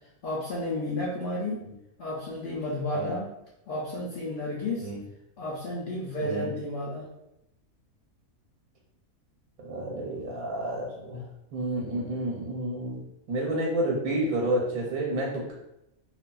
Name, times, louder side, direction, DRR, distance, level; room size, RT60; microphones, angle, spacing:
voice 1, 0.2-1.6 2.0-3.3 3.7-4.9 5.4-7.1, left 1 dB, 90° left, -5 dB, 0.4 m, -32 dB
voice 2, 9.6-11.2 11.5-13.0 13.3-15.5, right 1 dB, 85° right, -2 dB, 1.1 m, -30 dB
3.2 x 2.3 x 2.3 m, 0.85 s
omnidirectional pair, 1.5 m